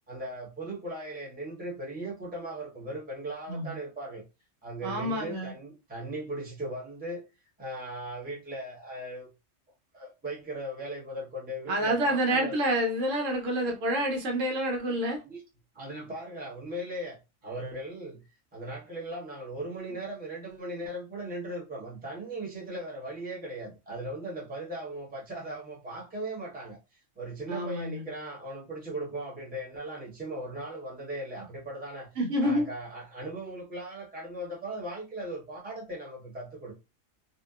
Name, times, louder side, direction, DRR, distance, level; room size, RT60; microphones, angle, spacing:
voice 1, 0.1-4.2 4.6-7.2 7.6-9.3 9.9-12.6 15.2-15.4 15.7-17.2 17.4-18.2 18.5-26.8 27.2-32.1 32.4-36.7, right 1 dB, 10° right, 0.7 m, -38 dB
voice 2, 3.5-3.8 4.8-5.5 11.7-15.2 27.5-28.0 32.2-32.7, right 1 dB, 75° right, 1.1 m, -28 dB
2.7 x 2.1 x 2.3 m
omnidirectional pair, 1.4 m